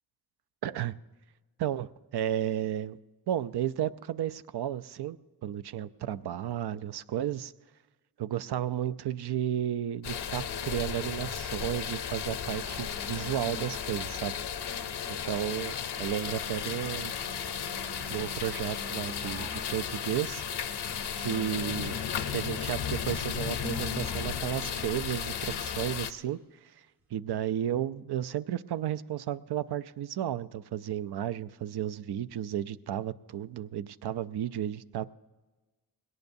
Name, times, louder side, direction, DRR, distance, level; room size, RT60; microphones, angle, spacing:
voice 1, 0.6-0.9 1.6-3.0 3.3-7.5 8.2-14.4 15.2-17.1 18.1-20.4 21.2-22.0 22.3-26.8 27.1-35.1, right 11 dB, 70° right, 13 dB, 0.5 m, -33 dB
sound 1, 10.0-26.1, left 8 dB, 75° left, 0.7 m, -34 dB
sound 2, 12.7-26.2 27.0-27.1, right 2 dB, 85° right, 1.9 m, -50 dB
20.5 x 17.5 x 2.7 m, 1.2 s
cardioid pair, 55°, 41 cm